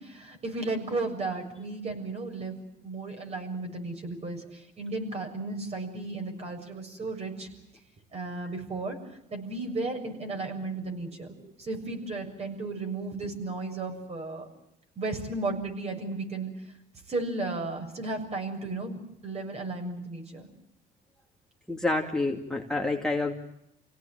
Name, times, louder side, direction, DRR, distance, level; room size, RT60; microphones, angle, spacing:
voice 1, 0.0-2.6 2.8-7.5 8.1-9.0 9.3-14.4 15.0-16.5 17.1-20.5, right 3 dB, 40° right, 4 dB, 7.1 m, -34 dB
voice 2, 21.7-23.3, left 2 dB, 5° left, -1 dB, 2.4 m, -28 dB
28.5 x 17.5 x 9.1 m, 0.84 s
cardioid pair, 110°, 17 cm